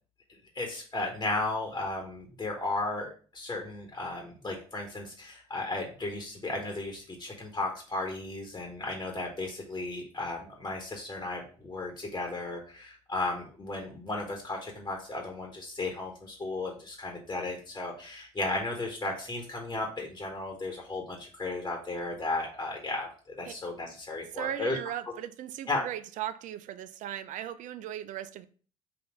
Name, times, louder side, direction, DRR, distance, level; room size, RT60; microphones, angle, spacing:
voice 1, 0.5-24.8 25.7-25.8, left 2 dB, 20° left, 1.2 m, -35 dB
voice 2, 24.3-28.5, right 11 dB, 50° right, 0.4 m, -37 dB
4.2 x 2.6 x 4.9 m
hypercardioid pair, 65°, 17 cm